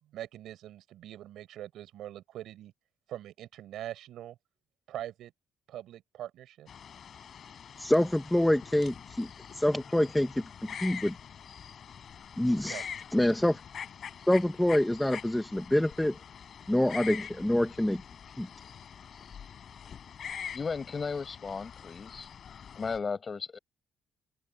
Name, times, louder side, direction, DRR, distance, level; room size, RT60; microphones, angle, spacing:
voice 1, 0.0-2.7 3.1-4.4 4.9-5.3 5.7-6.7 12.6-12.8, right 12 dB, 80° right, 5.8 m, -42 dB
sound 1, 6.7-23.0, left 8 dB, 55° left, 5.8 m, -44 dB
voice 2, 7.8-9.3 9.5-10.4 10.7-11.2 12.4-12.8 13.1-13.6 14.3-16.2 16.7-18.0 18.4-18.5, left 1 dB, 5° left, 1.2 m, -26 dB
voice 3, 20.5-22.3 22.8-23.6, left 5 dB, 35° left, 6.0 m, -35 dB
open air
cardioid pair, 90°, 0 cm